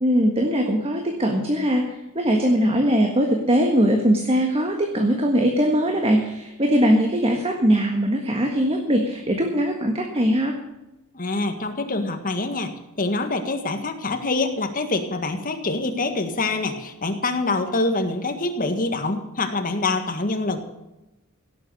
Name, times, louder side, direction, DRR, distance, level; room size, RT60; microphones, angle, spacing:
voice 1, 0.0-10.5, equal, 25° right, 2 dB, 1.6 m, -21 dB
voice 2, 11.1-12.7 13.0-20.6, left 2 dB, 40° left, 6 dB, 1.8 m, -25 dB
17.0 x 7.9 x 6.8 m, 0.97 s
head